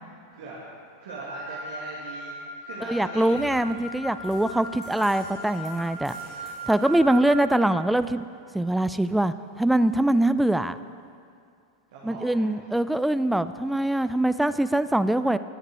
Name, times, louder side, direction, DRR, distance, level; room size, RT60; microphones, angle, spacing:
voice 1, 1.0-3.5 11.9-12.8, right 3 dB, 55° right, -5 dB, 2.1 m, -41 dB
Wind instrument woodwind instrument, 1.1-7.5, right 1 dB, 70° left, 1.9 m, -38 dB
voice 2, 2.9-6.2 6.7-8.3 8.5-10.8 12.0-15.4, right 1 dB, 5° right, 12 dB, 0.4 m, -23 dB
sound 1, 3.1-8.1, left 1 dB, 35° left, 3.1 m, -50 dB
19.5 x 6.6 x 4.6 m, 2.3 s
figure-of-eight pair, 90°, 0 cm